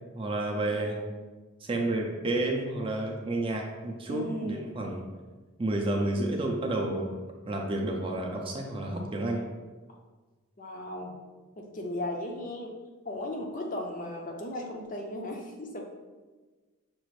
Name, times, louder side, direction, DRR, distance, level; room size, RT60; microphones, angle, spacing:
voice 1, 0.1-1.0 1.6-5.0 5.6-7.2 7.4-9.4, right 2 dB, 25° right, 0 dB, 0.4 m, -30 dB
voice 2, 0.7-1.1 4.1-4.7 10.6-11.2 11.6-12.7 13.0-15.8, left 1 dB, 35° left, 1 dB, 0.5 m, -36 dB
6.0 x 2.5 x 3.1 m, 1.3 s
head